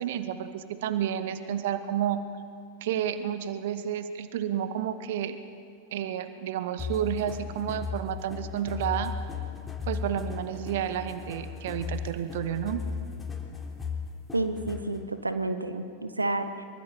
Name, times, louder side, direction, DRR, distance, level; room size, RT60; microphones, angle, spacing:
voice 1, 0.0-2.2 2.8-5.4 5.9-9.1 9.8-12.8, right 10 dB, 55° right, 11 dB, 1.2 m, -31 dB
sound 1, 6.8-15.0, left 5 dB, 10° left, 3.7 m, -36 dB
voice 2, 14.3-16.6, right 2 dB, 80° right, 10 dB, 1.2 m, -30 dB
24.5 x 23.0 x 7.5 m, 2.3 s
figure-of-eight pair, 90°, 0 cm